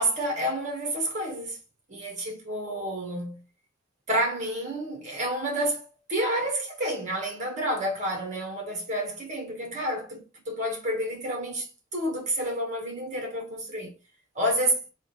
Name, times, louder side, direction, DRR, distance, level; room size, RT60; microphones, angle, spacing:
voice 1, 0.0-1.6 1.9-3.4 4.1-5.8 6.1-13.9 14.3-14.8, right 1 dB, 40° right, 1.5 m, -29 dB
3.7 x 2.6 x 3.8 m
head